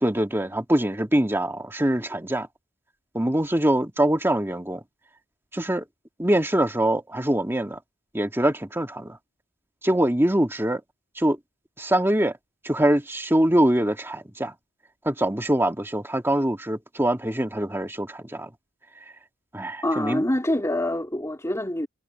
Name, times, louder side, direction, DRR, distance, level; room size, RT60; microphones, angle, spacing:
voice 1, 0.0-2.5 3.1-4.8 5.5-5.9 6.2-7.8 8.1-9.2 9.8-10.8 11.2-11.4 11.8-12.3 12.6-14.5 15.0-18.5 19.5-20.3, right 1 dB, 10° right, 1.9 m, -23 dB
voice 2, 19.8-21.9, left 1 dB, 15° left, 4.0 m, -25 dB
head